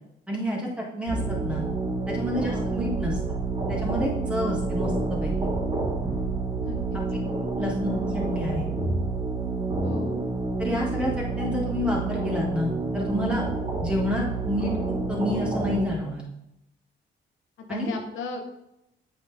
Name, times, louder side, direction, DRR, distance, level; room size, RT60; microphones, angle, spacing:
voice 1, 0.3-1.6 2.1-3.1 3.7-5.3 7.6-8.7 10.6-13.4 13.8-16.2 17.7-17.9, left 1 dB, 5° right, -3 dB, 1.9 m, -29 dB
sound 1, 1.1-15.9, right 3 dB, 30° right, 2.3 m, -28 dB
voice 2, 6.6-7.0 7.6-7.7 9.8-10.2 17.6-18.4, left 4 dB, 80° left, 3 dB, 1.2 m, -35 dB
8.5 x 3.9 x 3.4 m, 0.83 s
cardioid pair, 90°, 20 cm